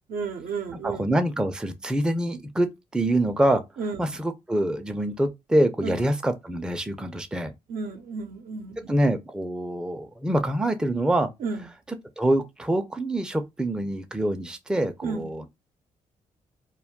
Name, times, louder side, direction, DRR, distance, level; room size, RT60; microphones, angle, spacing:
voice 1, 0.1-1.0 3.8-4.2 5.8-6.0 7.7-9.0 11.4-11.7 15.0-15.3, right 4 dB, 60° right, 0.6 m, -32 dB
voice 2, 0.8-3.6 4.0-7.5 8.9-11.3 12.2-15.5, right 1 dB, 5° right, 0.4 m, -25 dB
2.2 x 2.2 x 3.5 m
hypercardioid pair, 50°, 16 cm